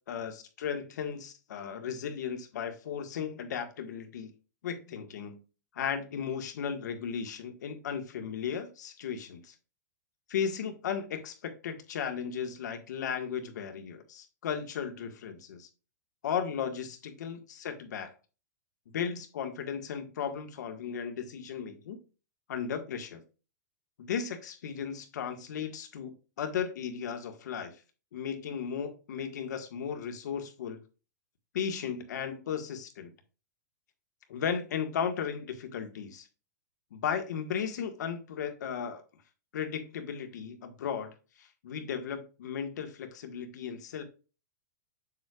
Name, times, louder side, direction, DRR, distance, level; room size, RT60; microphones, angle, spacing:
voice 1, 0.1-4.3 4.6-5.4 5.7-9.5 10.3-15.7 16.2-18.1 18.9-22.0 22.5-23.2 24.0-27.7 28.1-30.8 31.5-33.1 34.3-36.3 36.9-39.0 39.5-41.1 41.4-44.0, left 7 dB, 70° left, 1.6 m, -35 dB
7.4 x 6.6 x 2.4 m
supercardioid pair, 170°, 10 cm